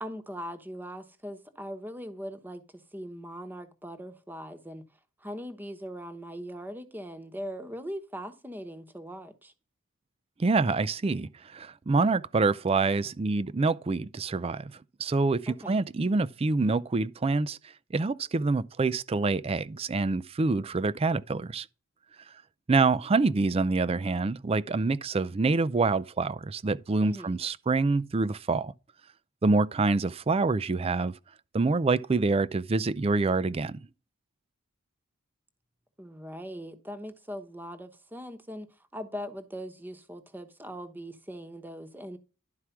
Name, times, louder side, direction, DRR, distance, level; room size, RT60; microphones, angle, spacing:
voice 1, 0.0-4.8 5.2-9.5 15.5-15.8 27.0-27.4 36.0-42.2, equal, 10° right, 1.0 m, -40 dB
voice 2, 10.4-14.7 15.0-17.6 17.9-21.7 22.7-28.7 29.4-31.1 31.5-33.8, right 3 dB, 30° right, 0.4 m, -26 dB
11.5 x 4.7 x 5.8 m
head